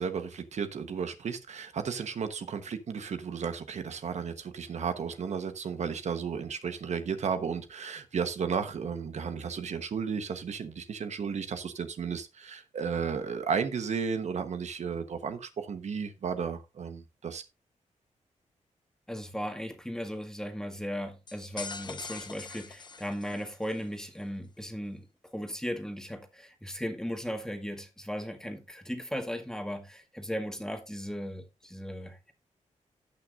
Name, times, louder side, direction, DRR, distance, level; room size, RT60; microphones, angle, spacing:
voice 1, 0.0-17.4, right 6 dB, 65° right, 1.2 m, -33 dB
voice 2, 19.1-32.3, equal, 5° left, 1.8 m, -37 dB
sound 1, 21.3-23.8, left 4 dB, 35° left, 1.0 m, -43 dB
17.5 x 6.3 x 2.6 m
wide cardioid pair, 125°, 13 cm